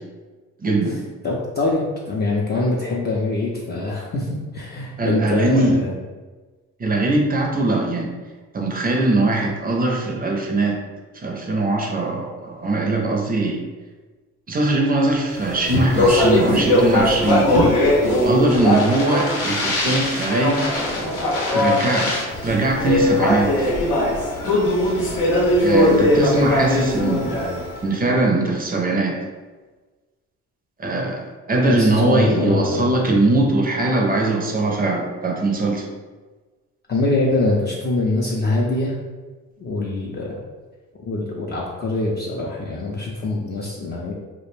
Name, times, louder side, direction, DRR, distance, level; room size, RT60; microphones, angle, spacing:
voice 1, 0.6-1.0 5.0-5.8 6.8-8.1 8.5-10.8 11.1-13.6 14.5-17.5 18.2-20.7 21.5-22.1 22.4-23.7 25.6-27.4 27.8-29.2 30.8-31.2 31.5-35.8, right 2 dB, 30° right, 1 dB, 0.5 m, -21 dB
voice 2, 1.2-6.0 31.7-33.0 36.9-39.0 39.6-40.3 40.9-44.1, left 2 dB, 35° left, -4 dB, 0.4 m, -23 dB
Speech, 15.4-27.8, left 1 dB, 90° left, 0.7 m, -20 dB
2.3 x 2.1 x 3.1 m, 1.3 s
cardioid pair, 90°, 30 cm